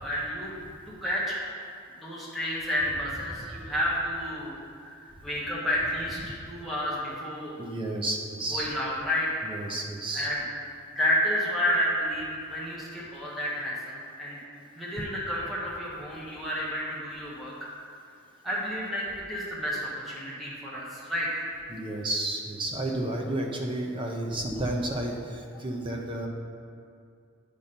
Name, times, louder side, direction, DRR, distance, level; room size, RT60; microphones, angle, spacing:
voice 1, 0.0-0.5 0.9-1.4 2.0-6.2 6.5-7.6 8.5-9.4 10.1-10.4 10.9-14.4 14.7-17.7 18.4-21.4, equal, ahead, -8 dB, 1.4 m, -30 dB
voice 2, 7.6-8.7 9.4-10.3 21.7-26.3, right 1 dB, 25° right, 1 dB, 0.7 m, -32 dB
9.3 x 5.2 x 4.4 m, 2.3 s
head